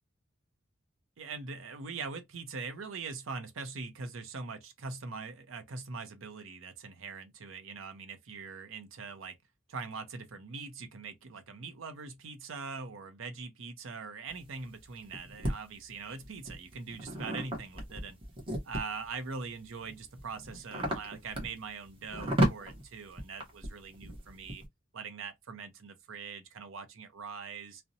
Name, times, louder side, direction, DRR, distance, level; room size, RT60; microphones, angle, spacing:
voice 1, 1.2-9.4 9.7-18.2 18.6-24.6 24.9-27.8, right 4 dB, 70° right, 0.6 m, -42 dB
sound 1, 14.3-15.5 16.2-19.1 19.6-24.6, right 1 dB, 25° right, 0.9 m, -34 dB
2.7 x 2.0 x 2.6 m
head